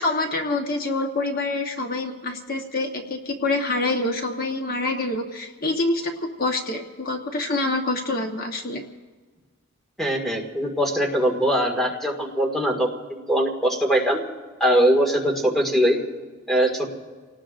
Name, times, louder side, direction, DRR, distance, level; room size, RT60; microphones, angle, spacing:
voice 1, 0.0-8.8, left 2 dB, 45° left, 3 dB, 1.2 m, -26 dB
voice 2, 10.0-14.2 14.6-16.0 16.5-16.9, equal, ahead, -1 dB, 2.0 m, -21 dB
29.0 x 18.5 x 2.6 m, 1.4 s
head